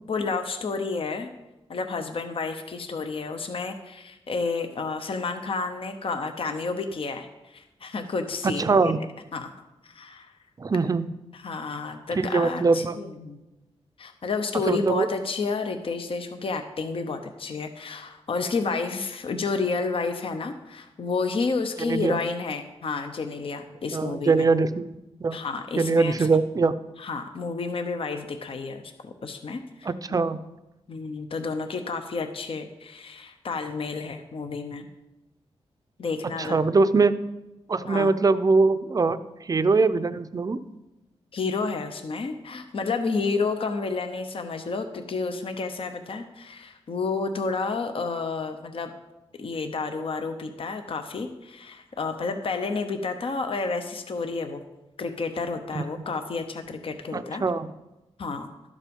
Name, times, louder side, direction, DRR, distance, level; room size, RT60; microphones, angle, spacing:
voice 1, 0.1-1.3 1.7-8.9 9.3-9.5 9.8-10.3 11.4-13.4 14.0-24.5 25.3-26.3 27.0-30.2 30.9-34.9 36.0-36.7 37.9-38.1 41.3-48.9 49.4-54.6 55.0-57.4 58.2-58.5, left 4 dB, 55° left, 7 dB, 0.8 m, -30 dB
voice 2, 8.4-9.0 10.6-11.1 12.1-13.0 14.7-15.1 21.8-22.2 23.9-25.4 25.7-26.7 29.8-30.4 36.4-37.2 37.7-40.6 55.7-55.8 57.1-57.7, right 4 dB, 35° right, 12 dB, 0.5 m, -22 dB
12.0 x 7.3 x 5.3 m, 1.0 s
wide cardioid pair, 120°, 11 cm